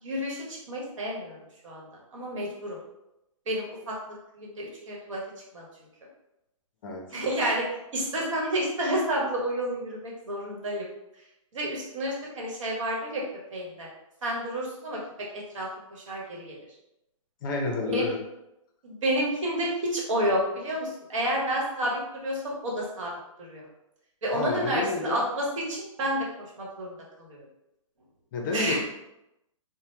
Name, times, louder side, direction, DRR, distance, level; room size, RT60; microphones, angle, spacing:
voice 1, 0.0-1.4 1.6-2.8 3.5-5.2 5.5-5.6 7.1-7.7 7.9-10.9 11.5-13.2 13.5-13.9 14.2-16.6 17.9-18.1 18.8-23.1 23.4-23.7 24.2-26.3 26.6-27.4 28.5-28.8, right 1 dB, 65° right, -3 dB, 1.1 m, -30 dB
voice 2, 17.4-18.2 24.3-25.2 28.3-28.8, left 3 dB, 40° left, 1 dB, 0.5 m, -29 dB
2.8 x 2.1 x 3.1 m, 0.89 s
hypercardioid pair, 155°, 17 cm